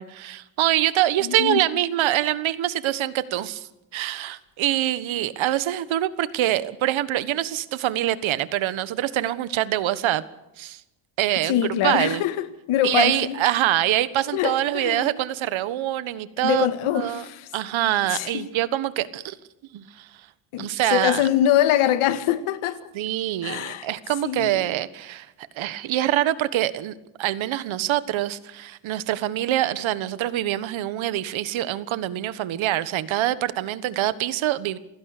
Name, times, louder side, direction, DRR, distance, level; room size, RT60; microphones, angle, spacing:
voice 1, 0.0-10.2 10.6-10.8 11.2-12.2 12.8-16.7 16.9-17.2 17.5-19.4 19.7-20.1 20.6-21.2 22.9-25.3 25.5-34.8, right 13 dB, 70° right, 1.5 m, -25 dB
voice 2, 1.2-1.6 11.4-13.4 14.3-15.1 16.4-17.5 18.1-18.5 20.5-22.8 23.4-23.9 24.2-24.7, left 11 dB, 80° left, 1.9 m, -24 dB
28.5 x 16.5 x 6.7 m
cardioid pair, 110°, 49 cm